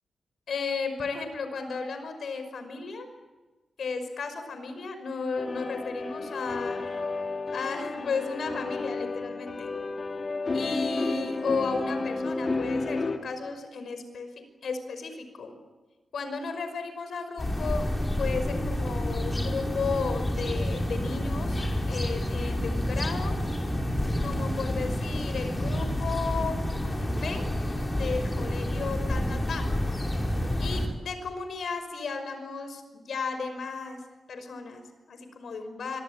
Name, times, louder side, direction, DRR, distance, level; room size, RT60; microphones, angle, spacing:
voice 1, 0.5-3.1 3.8-6.8 7.5-9.7 10.5-15.5 16.1-17.9 18.2-21.6 21.9-23.4 24.2-26.6 27.1-27.5 28.0-29.7 30.6-34.0 34.3-36.0, left 4 dB, 75° left, 8 dB, 5.4 m, -34 dB
sound 1, 5.4-13.2, left 3 dB, 40° left, 2.4 m, -31 dB
sound 2, 17.4-30.9, left 1 dB, 25° left, 5.7 m, -29 dB
26.0 x 25.0 x 8.9 m, 1.2 s
cardioid pair, 90°, 0 cm